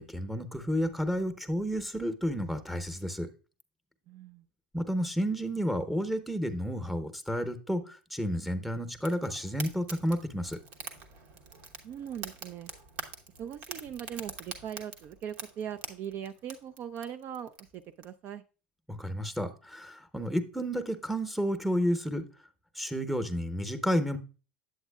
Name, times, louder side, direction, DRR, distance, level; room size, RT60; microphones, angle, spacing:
voice 1, 0.0-3.3 4.7-10.6 18.9-22.3 22.7-24.2, equal, ahead, 8 dB, 0.8 m, -31 dB
voice 2, 4.1-4.4 11.8-12.7 13.4-18.4, right 9 dB, 45° right, 9 dB, 0.4 m, -40 dB
Fire, 9.0-18.0, right 4 dB, 70° right, 1.1 m, -45 dB
8.3 x 7.8 x 2.3 m, 0.34 s
hypercardioid pair, 80°, 5 cm